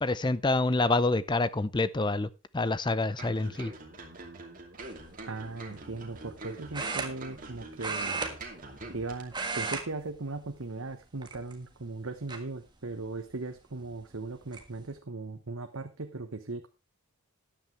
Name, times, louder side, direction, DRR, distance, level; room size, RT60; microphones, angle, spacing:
voice 1, 0.0-2.3 2.5-3.7, left 2 dB, 20° left, 0.5 m, -27 dB
sound 1, 3.2-9.5 9.8-9.9, right 2 dB, 35° right, 2.6 m, -45 dB
sound 2, 4.8-5.1 6.7-7.5 7.8-9.0 9.3-9.8 10.1-10.4 11.2-11.7 12.3-12.4 13.8-13.9 14.2-14.6, right 4 dB, 20° right, 1.6 m, -34 dB
voice 2, 5.3-8.2 8.9-16.7, right 3 dB, 65° right, 1.1 m, -38 dB
13.5 x 10.0 x 3.3 m
head